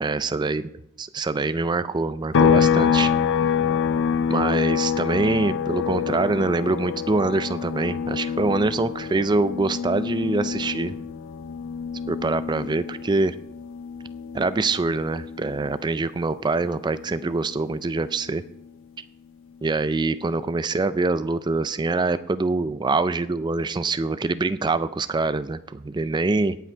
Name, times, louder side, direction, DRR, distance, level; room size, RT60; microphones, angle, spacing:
voice 1, 0.0-0.6 1.0-3.1 4.3-11.0 12.1-13.3 14.3-18.4 19.6-26.6, right 3 dB, 20° right, 13 dB, 0.3 m, -24 dB
sound 1, 2.3-15.9 16.2-18.4, left 7 dB, 55° left, 0.5 m, -26 dB
17.5 x 5.9 x 4.5 m, 0.78 s
head